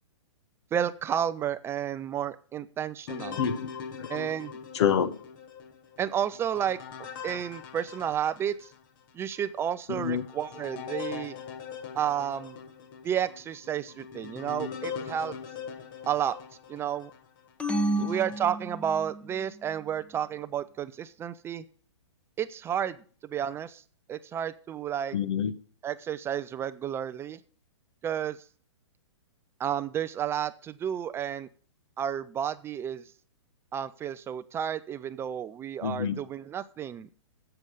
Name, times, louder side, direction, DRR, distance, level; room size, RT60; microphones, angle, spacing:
voice 1, 0.7-3.4 4.1-4.6 6.0-8.7 9.1-11.4 11.9-12.6 13.0-15.3 16.1-16.4 16.7-17.1 18.0-21.6 22.4-23.0 23.2-23.8 24.1-25.2 25.8-27.4 28.0-28.4 29.6-31.5 32.0-33.1 33.7-37.1, right 9 dB, 15° right, 13 dB, 0.4 m, -31 dB
sound 1, 3.1-8.8 9.4-9.5 10.0-17.2 17.8-18.4, left 7 dB, 40° left, 1.3 m, -41 dB
voice 2, 3.4-3.7 4.0-4.1 4.7-5.2 9.9-10.3 18.0-18.1 25.1-25.5 35.8-36.2, left 8 dB, 60° left, 16 dB, 1.2 m, -27 dB
sound 2, 17.6-19.3, right 1 dB, 5° left, 1.0 m, -30 dB
12.5 x 8.0 x 5.0 m, 0.44 s
hypercardioid pair, 135°, 16 cm